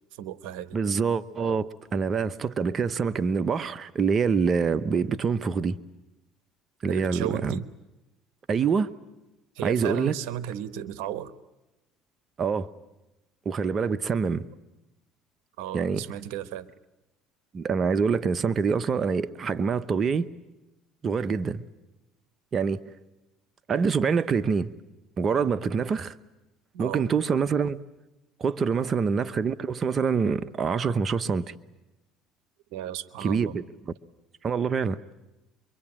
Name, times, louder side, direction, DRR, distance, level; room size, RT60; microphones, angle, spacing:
voice 1, 0.2-0.8 6.9-7.7 9.5-11.3 15.6-16.7 26.7-27.0 28.7-28.9 32.7-33.6, right 11 dB, 80° right, 1.0 m, -34 dB
voice 2, 0.7-5.8 6.8-7.6 8.5-8.9 9.6-10.1 12.4-12.7 13.4-14.5 15.7-16.0 17.5-20.3 21.0-21.6 22.5-22.8 23.7-24.7 25.2-26.1 26.8-27.8 28.4-31.5 33.2-33.6 34.4-35.0, right 5 dB, 40° right, 0.9 m, -25 dB
25.5 x 23.5 x 8.8 m
supercardioid pair, 90°, 0 cm